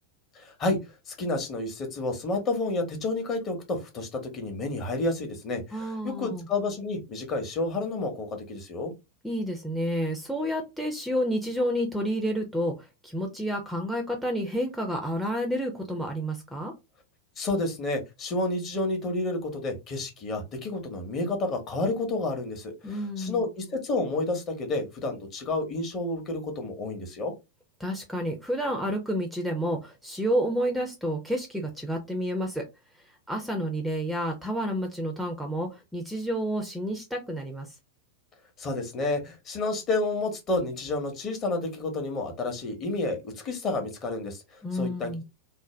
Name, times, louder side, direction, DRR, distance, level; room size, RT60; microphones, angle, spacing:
voice 1, 0.3-8.9 17.4-27.3 38.6-45.1, left 2 dB, 30° left, 4 dB, 0.9 m, -30 dB
voice 2, 5.7-6.5 9.2-16.7 22.8-23.5 27.8-32.6 33.3-37.7 44.6-45.2, equal, ahead, 3 dB, 0.5 m, -30 dB
2.6 x 2.1 x 3.1 m, 0.23 s
figure-of-eight pair, 90°, 0 cm